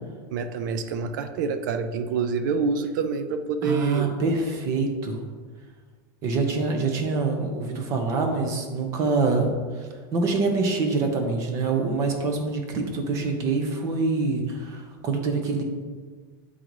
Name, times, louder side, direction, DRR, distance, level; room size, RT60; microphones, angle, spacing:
voice 1, 0.3-4.2, right 5 dB, 70° right, 9 dB, 0.5 m, -27 dB
voice 2, 3.6-5.2 6.2-15.6, right 3 dB, 30° right, 4 dB, 0.8 m, -25 dB
7.5 x 4.0 x 4.7 m, 1.5 s
supercardioid pair, 175°, 11 cm